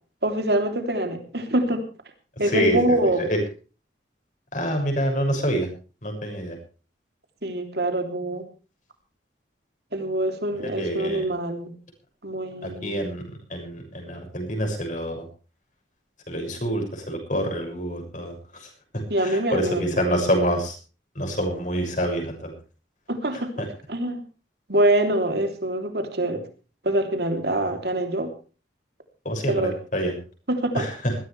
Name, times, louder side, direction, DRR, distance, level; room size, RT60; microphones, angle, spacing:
voice 1, 0.2-1.8 2.4-3.3 7.4-8.5 9.9-11.7 12.2-13.1 19.1-20.1 23.1-24.2 24.7-26.4 26.8-28.3 29.5-29.7 30.5-30.8, right 1 dB, 60° right, 6 dB, 3.2 m, -25 dB
voice 2, 2.4-3.4 4.5-5.7 6.0-6.6 10.5-11.3 12.6-15.3 16.3-20.8 21.1-22.5 23.3-23.7 29.2-30.2 30.7-31.1, equal, 45° left, 3 dB, 6.5 m, -27 dB
21.0 x 15.5 x 3.3 m, 0.36 s
head